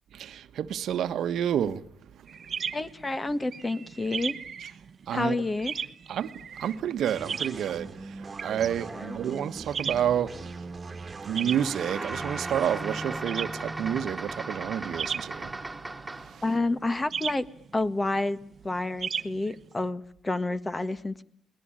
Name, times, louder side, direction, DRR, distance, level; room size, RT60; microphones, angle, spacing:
voice 1, 0.1-1.8 5.1-5.4 6.1-10.3 11.2-15.5 16.3-16.4, right 9 dB, 70° right, 1.3 m, -29 dB
sound 1, 2.3-19.9, right 6 dB, 45° right, 1.0 m, -38 dB
voice 2, 2.7-4.3 5.1-5.8 8.9-9.2 16.4-17.4 17.7-18.4 18.6-21.2, left 2 dB, 20° left, 1.5 m, -29 dB
sound 2, 7.0-16.5, right 3 dB, 30° right, 1.9 m, -42 dB
sound 3, 11.5-16.5, right 2 dB, 10° right, 2.5 m, -37 dB
28.5 x 20.0 x 8.9 m
cardioid pair, 90°, 0 cm